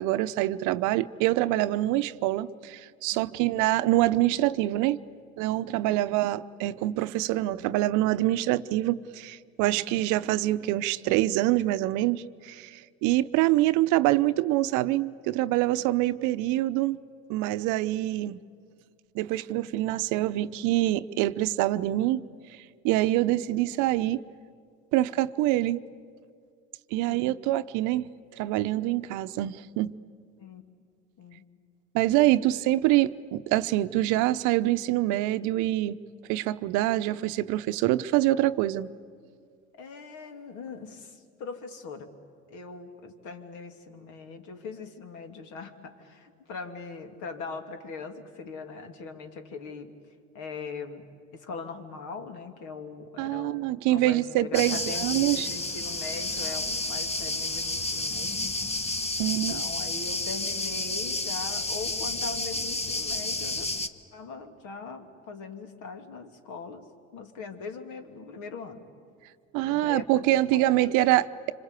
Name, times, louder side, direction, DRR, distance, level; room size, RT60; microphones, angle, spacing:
voice 1, 0.0-5.0 5.4-17.0 17.3-18.4 19.1-22.2 22.8-24.2 24.9-25.8 26.9-28.1 28.4-29.9 31.9-36.0 36.3-38.9 53.2-55.5 59.2-59.5 69.5-71.5, right 15 dB, 65° right, 13 dB, 0.8 m, -25 dB
voice 2, 3.1-3.4 5.7-6.1 9.7-9.9 15.8-15.9 27.1-27.4 30.4-30.6 31.2-31.5 39.7-42.1 42.5-58.5 59.2-63.7 64.1-68.9 69.6-71.2, left 4 dB, 60° left, 6 dB, 2.8 m, -41 dB
sound 1, 54.5-63.9, left 2 dB, 20° left, 1.4 m, -31 dB
26.0 x 26.0 x 8.3 m, 2.1 s
hypercardioid pair, 75°, 32 cm